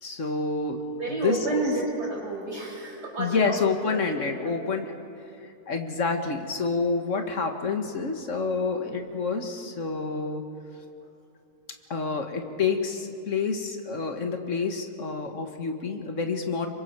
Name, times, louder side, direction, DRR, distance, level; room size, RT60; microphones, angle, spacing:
voice 1, 0.0-0.8 1.1-1.7 3.2-5.0 5.7-10.4 11.9-16.7, left 4 dB, 50° left, 4 dB, 2.0 m, -28 dB
voice 2, 1.0-3.6 3.8-4.5 8.8-8.9, right 2 dB, 85° right, -2 dB, 5.8 m, -31 dB
27.0 x 24.0 x 4.7 m, 2.8 s
omnidirectional pair, 1.7 m